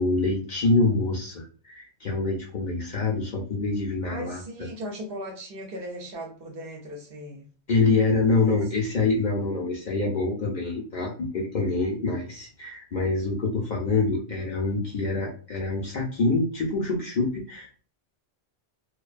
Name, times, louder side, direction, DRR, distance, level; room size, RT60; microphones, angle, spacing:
voice 1, 0.0-4.4 7.7-17.8, left 3 dB, 55° left, -1 dB, 0.5 m, -25 dB
voice 2, 4.1-7.5 8.4-8.6, equal, 60° right, 2 dB, 0.8 m, -38 dB
2.5 x 2.2 x 2.3 m, 0.41 s
omnidirectional pair, 1.2 m